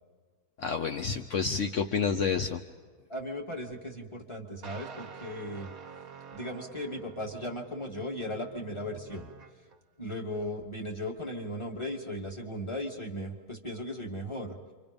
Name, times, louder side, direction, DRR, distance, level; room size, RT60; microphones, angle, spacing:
voice 1, 0.6-2.6, left 6 dB, 60° left, 6 dB, 0.8 m, -29 dB
voice 2, 3.1-5.7 6.3-9.3 10.0-14.6, left 1 dB, 15° left, 1 dB, 2.1 m, -37 dB
sound 1, 4.6-9.8, right 6 dB, 50° right, 1.4 m, -48 dB
29.0 x 26.0 x 5.3 m, 1.5 s
omnidirectional pair, 2.3 m